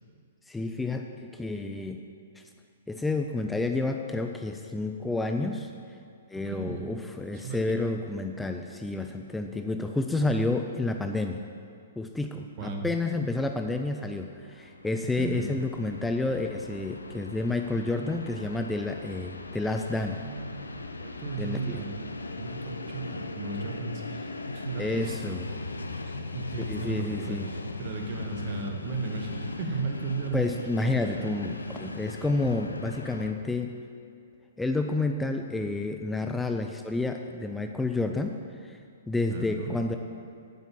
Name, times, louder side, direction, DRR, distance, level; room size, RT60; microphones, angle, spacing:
voice 1, 0.5-2.0 2.4-2.5 2.9-5.7 6.3-11.4 12.0-20.2 21.4-21.8 24.8-25.5 26.7-27.5 30.3-33.8 34.6-38.8 39.1-40.0, left 2 dB, 5° left, 4 dB, 0.4 m, -30 dB
voice 2, 6.5-6.9 7.4-7.9 12.6-12.8 15.2-15.5 20.1-21.9 22.4-25.1 26.0-30.4 31.0-31.4 39.3-39.8, right 4 dB, 45° right, 3 dB, 1.4 m, -36 dB
Train, 14.4-33.3, left 2 dB, 85° left, 0.6 m, -39 dB
9.1 x 5.6 x 7.5 m, 2.4 s
figure-of-eight pair, 120°, 0 cm